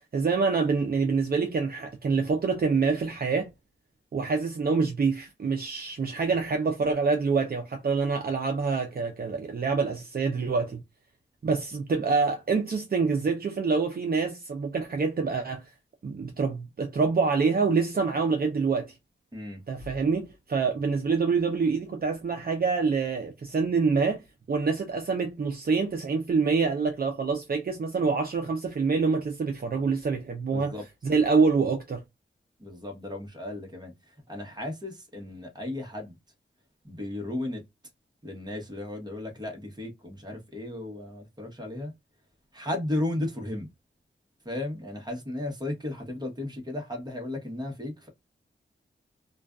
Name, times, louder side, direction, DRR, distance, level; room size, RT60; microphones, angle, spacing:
voice 1, 0.1-3.5 4.1-10.8 11.4-15.6 16.0-18.9 19.7-24.2 24.5-30.7 31.0-32.0, right 4 dB, 45° right, 0.5 m, -26 dB
voice 2, 19.3-19.6 30.5-30.8 32.6-36.1 36.8-37.6 38.2-41.9 42.5-43.7 44.4-48.1, left 1 dB, 20° right, 1.0 m, -35 dB
2.4 x 2.3 x 2.3 m
wide cardioid pair, 90°, 21 cm